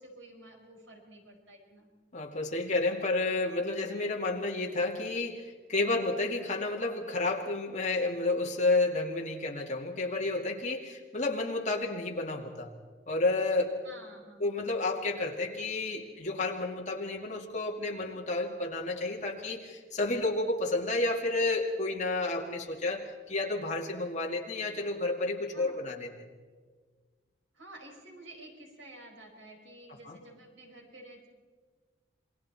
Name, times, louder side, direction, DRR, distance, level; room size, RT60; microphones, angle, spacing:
voice 1, 0.0-1.9 5.9-6.1 13.8-14.5 25.5-25.9 27.5-31.3, right 1 dB, 80° right, 1 dB, 5.5 m, -51 dB
voice 2, 2.1-12.7 13.1-13.8 14.4-26.1 30.0-30.2, left 2 dB, 35° left, 0 dB, 2.4 m, -31 dB
28.0 x 21.5 x 4.4 m, 1.5 s
head